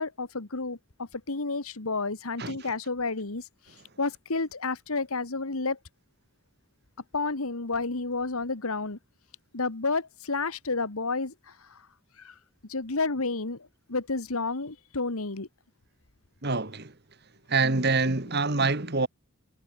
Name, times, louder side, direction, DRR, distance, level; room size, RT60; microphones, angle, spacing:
voice 1, 0.0-3.5 4.0-5.8 7.1-9.0 9.5-11.8 12.2-12.4 12.6-15.5, left 3 dB, 85° left, 1.8 m, -31 dB
voice 2, 2.4-2.7 16.4-16.9 17.5-19.1, right 3 dB, 50° right, 2.1 m, -26 dB
head